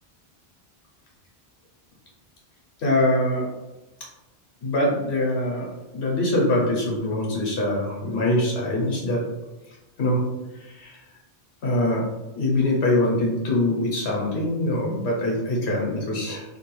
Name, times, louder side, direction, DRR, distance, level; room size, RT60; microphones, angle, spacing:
voice 1, 2.8-3.5 4.6-5.7 5.9-9.2 10.0-10.2 10.6-11.0 11.6-12.1 12.4-16.4, left 1 dB, 75° left, -3 dB, 1.0 m, -23 dB
2.4 x 2.3 x 3.0 m, 1.0 s
omnidirectional pair, 1.1 m